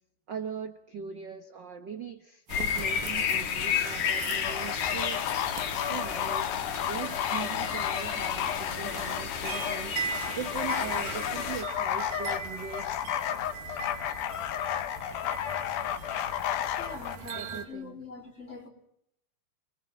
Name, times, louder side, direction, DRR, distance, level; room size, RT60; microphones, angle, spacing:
voice 1, 0.3-5.3 5.9-6.5 6.9-13.0 17.3-18.0, right 7 dB, 55° right, 1.2 m, -40 dB
sound 1, 2.5-11.6, left 7 dB, 60° left, 3.1 m, -32 dB
sound 2, 2.5-17.7, right 6 dB, 80° right, 4.0 m, -41 dB
sound 3, 4.4-17.2, left 10 dB, 90° left, 2.9 m, -33 dB
voice 2, 16.8-18.7, left 3 dB, 20° left, 3.8 m, -43 dB
29.0 x 21.5 x 7.7 m
omnidirectional pair, 4.0 m